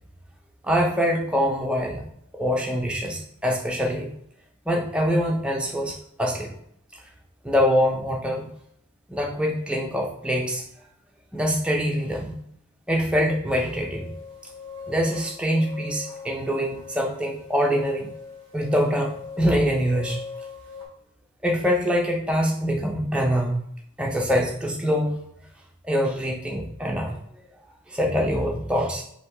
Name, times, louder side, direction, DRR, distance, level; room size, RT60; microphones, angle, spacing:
voice 1, 0.6-2.0 2.3-4.1 4.7-6.5 7.4-8.5 9.1-10.6 11.3-12.3 12.9-14.1 14.9-18.1 18.5-20.2 21.4-23.6 24.0-25.1 25.8-27.2 27.9-29.0, equal, 5° right, 0 dB, 0.6 m, -24 dB
sound 1, 13.5-20.9, left 5 dB, 20° left, 1.1 m, -41 dB
3.4 x 3.0 x 4.6 m, 0.71 s
head